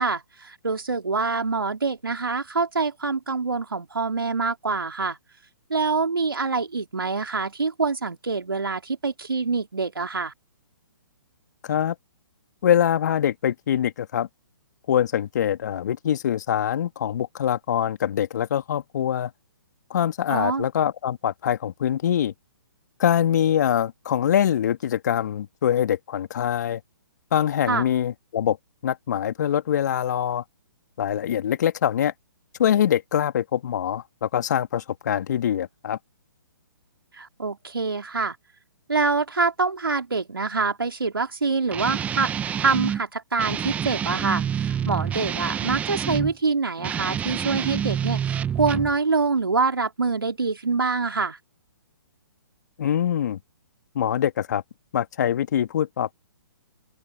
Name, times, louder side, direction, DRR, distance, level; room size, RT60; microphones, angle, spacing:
voice 1, 0.0-5.2 5.7-10.3 20.3-20.7 27.7-27.9 37.1-38.4 38.9-42.3 42.6-51.4, right 4 dB, 80° right, 3.3 m, -25 dB
voice 2, 11.6-12.0 12.6-14.3 14.9-19.3 19.9-22.3 23.0-26.8 27.3-28.6 28.8-30.4 31.0-32.1 32.6-36.0 52.8-53.4 53.9-54.6 54.9-56.1, left 10 dB, 50° left, 2.5 m, -24 dB
Guitar, 41.7-43.0 43.4-46.3 46.8-49.0, right 8 dB, 10° right, 0.6 m, -28 dB
open air
figure-of-eight pair, 130°, 12 cm